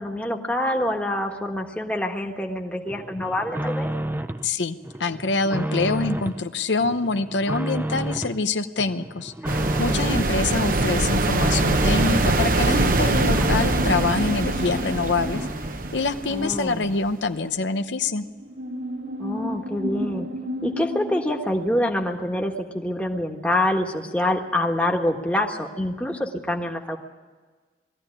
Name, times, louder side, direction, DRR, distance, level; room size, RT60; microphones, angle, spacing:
voice 1, 0.0-3.9 9.9-10.2 16.3-16.9 19.2-20.3 20.6-27.0, left 1 dB, 5° left, 1 dB, 1.5 m, -26 dB
sound 1, 2.9-4.5 4.8-6.4 6.8-8.4 8.8-10.3 10.7-12.3 12.7-14.3 14.7-14.8 15.1-15.2 15.3-16.2 16.5-16.6, right 1 dB, 10° right, 0.5 m, -31 dB
voice 2, 4.4-15.5 15.9-18.3, left 3 dB, 80° left, 8 dB, 0.9 m, -25 dB
sound 2, 9.5-17.1, right 2 dB, 50° right, 0.9 m, -23 dB
sound 3, 12.5-21.3, left 1 dB, 80° right, 3.4 m, -33 dB
20.0 x 14.5 x 9.9 m, 1.4 s
head